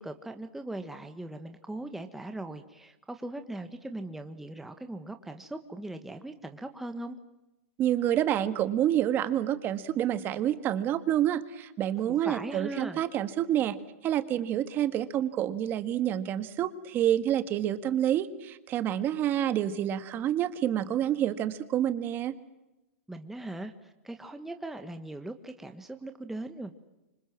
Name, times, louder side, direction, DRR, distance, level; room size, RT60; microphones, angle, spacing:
voice 1, 0.0-7.2 12.1-13.0 23.1-26.7, right 2 dB, 5° right, 7 dB, 1.4 m, -39 dB
voice 2, 7.8-13.8 14.0-22.3, right 11 dB, 30° right, 12 dB, 1.6 m, -28 dB
28.0 x 26.0 x 7.6 m, 1.0 s
supercardioid pair, 145°, 7 cm